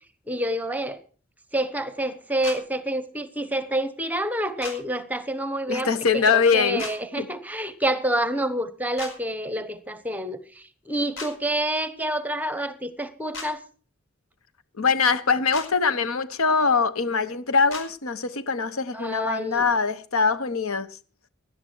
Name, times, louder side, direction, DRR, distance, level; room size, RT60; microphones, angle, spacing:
voice 1, 0.3-1.0 1.5-13.6 18.9-19.7, right 1 dB, 10° right, 1.1 m, -28 dB
sound 1, 2.4-2.6 4.6-4.8 6.8-6.9 9.0-9.1 11.1-11.3 13.3-13.5 15.5-15.7 17.7-17.9, left 4 dB, 65° left, 4.7 m, -35 dB
voice 2, 5.7-6.9 7.2-7.3 14.8-20.9, left 5 dB, 90° left, 1.1 m, -23 dB
17.0 x 11.5 x 4.7 m
head